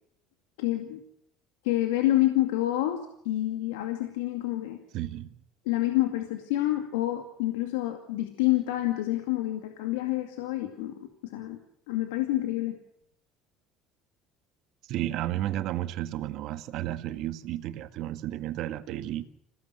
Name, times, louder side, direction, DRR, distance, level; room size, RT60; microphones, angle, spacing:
voice 1, 0.6-1.0 1.6-4.8 5.7-11.6 11.9-12.7, left 15 dB, 80° left, 4 dB, 2.2 m, -28 dB
voice 2, 4.9-5.3 14.9-19.3, right 13 dB, 60° right, 10 dB, 1.8 m, -32 dB
27.5 x 17.0 x 7.8 m, 0.76 s
hypercardioid pair, 70°, 0 cm